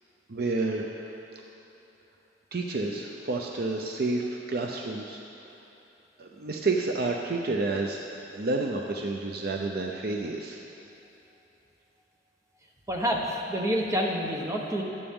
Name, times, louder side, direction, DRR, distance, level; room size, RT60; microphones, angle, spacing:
voice 1, 0.3-1.1 2.5-5.2 6.2-8.0 8.3-10.6, right 3 dB, 55° right, 1 dB, 0.6 m, -30 dB
voice 2, 12.9-14.8, equal, 15° right, 0 dB, 1.0 m, -28 dB
14.0 x 9.9 x 3.7 m, 3.0 s
head